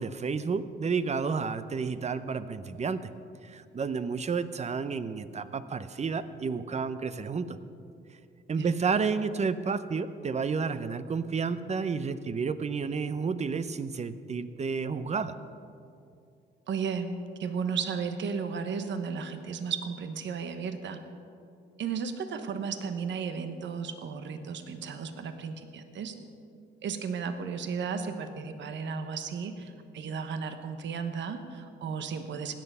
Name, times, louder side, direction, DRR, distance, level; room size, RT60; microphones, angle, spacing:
voice 1, 0.0-3.1 3.4-7.6 8.5-15.4, right 5 dB, 35° right, 13 dB, 0.7 m, -31 dB
voice 2, 16.7-17.1 17.4-21.0 21.8-26.1 26.8-32.5, right 6 dB, 65° right, 8 dB, 1.2 m, -34 dB
16.5 x 10.0 x 5.5 m, 2.5 s
cardioid pair, 90°, 20 cm